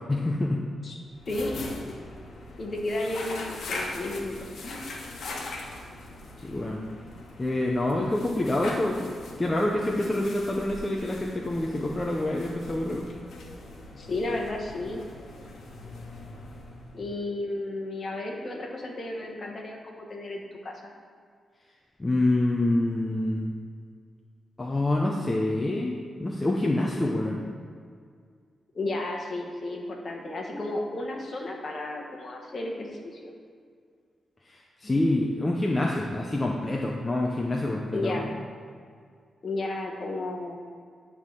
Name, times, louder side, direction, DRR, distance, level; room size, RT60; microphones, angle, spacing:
voice 1, 0.1-0.6 6.4-6.8 7.4-9.1 9.4-13.0 22.0-23.5 24.6-27.4 34.5-38.2, left 1 dB, 15° left, -2 dB, 0.6 m, -26 dB
sound 1, 1.1-17.2, left 2 dB, 75° left, 1.2 m, -41 dB
voice 2, 1.3-1.6 2.6-4.8 14.0-15.0 16.9-20.7 28.7-33.3 37.9-38.3 39.4-40.6, left 2 dB, 40° left, 0 dB, 1.2 m, -33 dB
9.7 x 3.6 x 6.4 m, 2.1 s
wide cardioid pair, 175°, 0 cm